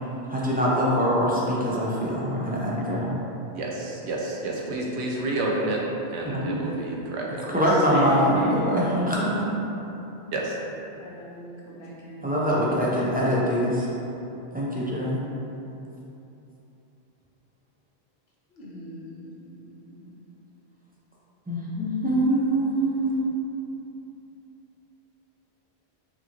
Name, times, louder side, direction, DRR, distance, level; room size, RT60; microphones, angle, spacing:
voice 1, 0.3-3.1 6.3-6.4 7.5-9.7 12.2-13.9 14.5-15.2 21.5-23.3, equal, 15° right, -7 dB, 0.3 m, -24 dB
voice 2, 3.5-5.8 6.1-7.6 10.3-10.6, right 2 dB, 85° right, -3 dB, 0.9 m, -30 dB
voice 3, 7.9-8.7 11.0-12.3 18.5-20.1, right 2 dB, 75° left, -5 dB, 1.1 m, -33 dB
4.7 x 2.7 x 2.9 m, 3.0 s
omnidirectional pair, 1.1 m